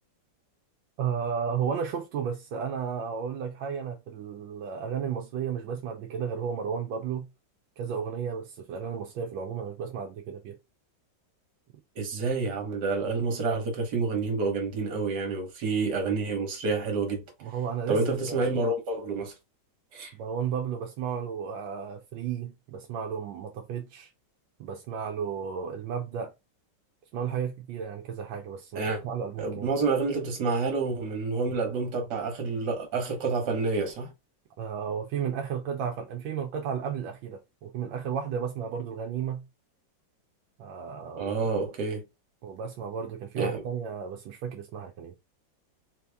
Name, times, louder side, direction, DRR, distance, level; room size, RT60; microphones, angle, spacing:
voice 1, 1.0-7.3 7.8-10.6 17.4-18.5 20.1-24.1 24.6-26.3 27.1-29.7 34.6-39.4 40.6-41.5 42.4-45.1, right 7 dB, 85° right, 1.4 m, -33 dB
voice 2, 12.0-17.2 17.9-19.3 19.9-20.1 28.8-29.0 29.4-34.1 41.2-42.0 43.4-43.6, right 4 dB, 65° right, 1.8 m, -28 dB
4.0 x 2.8 x 3.4 m
omnidirectional pair, 2.0 m